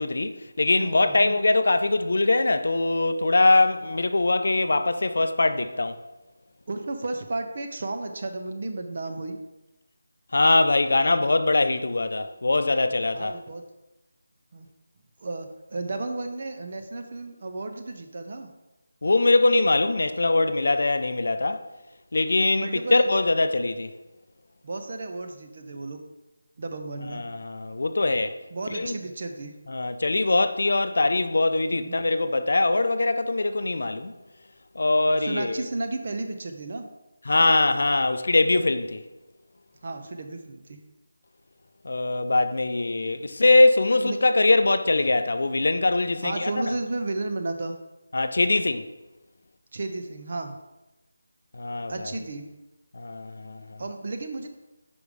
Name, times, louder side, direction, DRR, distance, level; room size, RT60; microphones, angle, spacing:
voice 1, 0.0-6.0 10.3-13.4 19.0-21.6 22.1-23.9 27.1-28.4 28.7-28.9 29.7-34.1 34.8-35.6 37.3-39.0 41.8-46.7 48.1-48.9 51.5-52.1 52.9-53.8, left 2 dB, 55° left, 0.4 m, -22 dB
voice 2, 0.8-1.4 6.7-9.4 13.1-13.6 14.5-14.7 15.2-18.5 22.6-23.1 24.6-26.0 26.6-27.2 28.5-29.5 31.7-32.0 35.2-36.8 39.8-40.8 44.0-44.2 46.2-47.7 49.7-50.6 51.9-52.5 53.8-54.5, right 2 dB, 30° right, 0.5 m, -33 dB
5.1 x 5.0 x 4.8 m
figure-of-eight pair, 180°, 0 cm